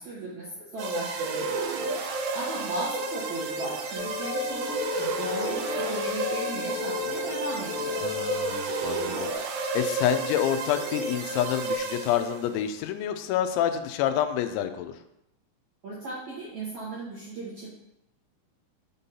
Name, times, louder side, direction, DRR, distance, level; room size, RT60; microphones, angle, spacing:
voice 1, 0.0-1.6 1.9-8.1 15.8-17.7, right 2 dB, 70° right, -9 dB, 1.8 m, -37 dB
sound 1, 0.8-12.6, right 3 dB, 85° right, 3.1 m, -31 dB
sound 2, 4.0-9.3, left 7 dB, 60° left, 2.3 m, -34 dB
voice 2, 8.0-14.9, left 10 dB, 90° left, 9 dB, 2.9 m, -28 dB
7.0 x 2.8 x 5.3 m, 0.85 s
omnidirectional pair, 5.3 m